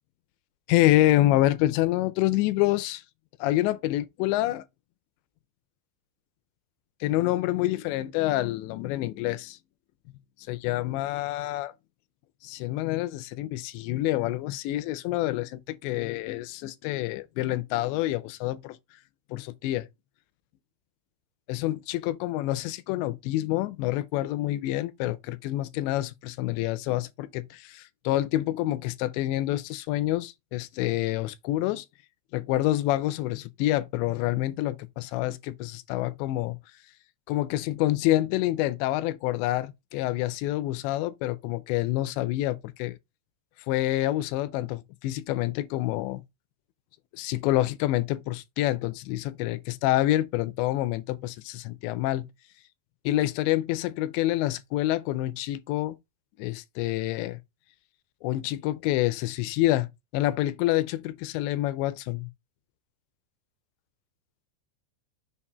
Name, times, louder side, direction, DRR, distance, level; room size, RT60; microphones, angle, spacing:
voice 1, 0.7-3.0 3.4-4.6 7.0-9.6 10.5-11.7 12.4-18.8 19.3-19.9 21.5-31.9 32.3-36.6 37.3-43.0 43.7-46.2 47.1-52.3 53.1-56.0 56.4-57.4 58.2-62.3, left 15 dB, 85° left, 2.8 m, -27 dB
7.2 x 2.5 x 5.4 m
omnidirectional pair, 5.2 m